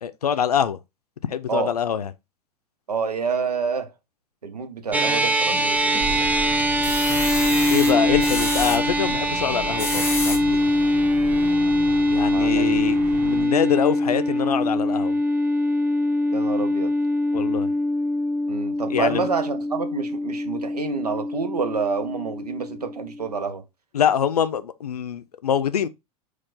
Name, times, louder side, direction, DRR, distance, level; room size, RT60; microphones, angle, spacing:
voice 1, 0.0-0.8 1.3-2.1 7.7-10.6 12.1-15.2 17.3-17.7 18.9-19.3 23.9-25.9, left 8 dB, 85° left, 0.5 m, -24 dB
voice 2, 2.9-3.9 4.4-6.3 12.2-12.8 16.3-16.9 18.5-23.6, right 5 dB, 85° right, 0.7 m, -28 dB
sound 1, 4.9-23.5, left 1 dB, 10° right, 0.5 m, -23 dB
sound 2, 5.5-6.1 6.6-8.8 9.6-10.4 11.0-11.1 11.4-11.5, left 2 dB, 10° left, 1.4 m, -29 dB
sound 3, 6.0-13.5, right 3 dB, 65° right, 1.2 m, -35 dB
4.4 x 2.3 x 4.0 m
figure-of-eight pair, 90°, 19 cm